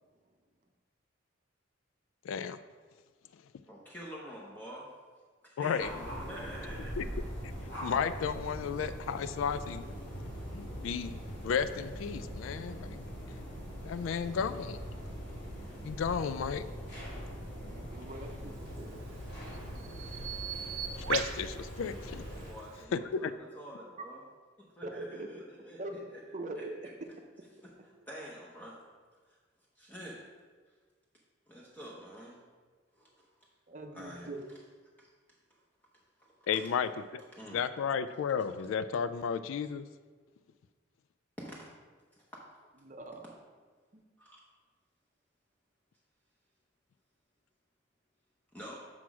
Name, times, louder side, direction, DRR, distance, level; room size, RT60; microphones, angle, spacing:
voice 1, 2.2-2.6 5.6-5.9 7.0-7.1 7.8-9.8 10.5-13.1 13.8-14.8 15.8-16.6 21.0-22.3 22.9-23.3 36.5-37.2 37.5-39.9, left 6 dB, 80° left, 13 dB, 0.3 m, -33 dB
voice 2, 3.7-4.9 5.4-6.9 22.4-24.2 24.6-26.2 26.6-26.7 27.6-27.7 28.1-28.8 29.8-30.2 31.5-32.4 33.0-33.3 33.9-34.3 35.0-35.1 36.2-36.5 37.3-37.6 41.4-41.7 44.2-44.4 48.5-48.8, equal, 10° left, -5 dB, 0.8 m, -47 dB
sound 1, 5.8-22.5, equal, 55° left, 2.2 m, -42 dB
voice 3, 17.6-19.0 24.8-25.3 25.8-26.0 26.3-26.9 27.2-27.3 27.9-28.0 33.7-34.5 42.8-43.3 43.9-44.0, right 2 dB, 40° right, 4 dB, 0.7 m, -42 dB
Bird vocalization bird call bird song, 18.6-22.9, right 8 dB, 90° right, 0.5 m, -40 dB
6.1 x 6.0 x 4.7 m, 1.5 s
head